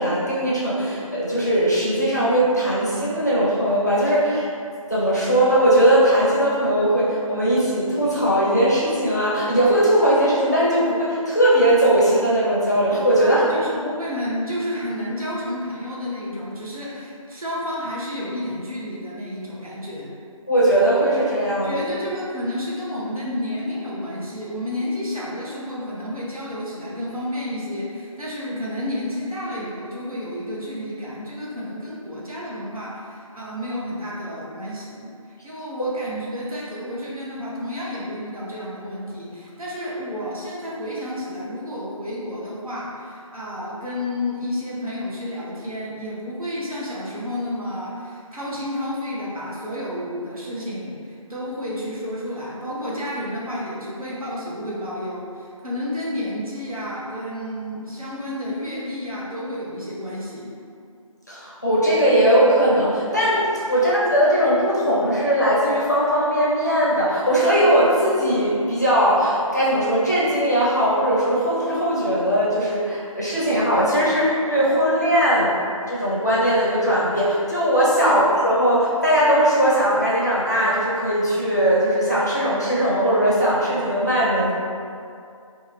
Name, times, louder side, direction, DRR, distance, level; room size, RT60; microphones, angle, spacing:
voice 1, 0.0-4.5 4.9-13.6 20.5-21.8 35.8-35.9 61.3-75.6 75.9-84.5, right 1 dB, 30° left, -8 dB, 0.5 m, -19 dB
voice 2, 13.2-20.1 21.6-60.5 63.7-63.9 78.0-78.2, left 1 dB, 80° right, -6 dB, 0.9 m, -31 dB
2.7 x 2.3 x 3.1 m, 2.4 s
figure-of-eight pair, 165°, 18 cm